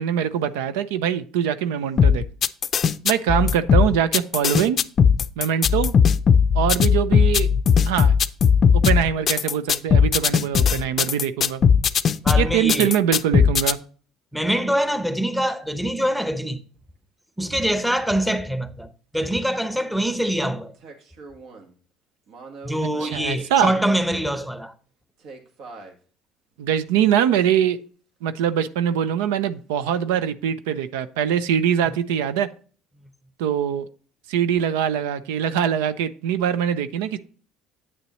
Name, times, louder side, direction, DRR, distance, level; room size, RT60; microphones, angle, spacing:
voice 1, 0.0-2.2 3.0-4.8 5.4-5.9 6.5-7.5 7.9-8.1 8.8-11.6 12.3-13.8 23.0-23.7 26.6-27.8 28.2-32.5 33.4-33.9 34.3-37.2, right 9 dB, 90° right, 0.5 m, -23 dB
sound 1, 2.0-13.7, left 7 dB, 45° left, 0.4 m, -18 dB
voice 2, 12.2-12.9 14.3-16.6 17.4-20.7 22.6-24.7, right 1 dB, 5° right, 0.8 m, -24 dB
sound 2, 20.7-21.7 22.3-24.5 25.2-26.0 26.8-26.9, right 3 dB, 70° right, 1.6 m, -43 dB
8.6 x 6.8 x 3.1 m
supercardioid pair, 85°, 0 cm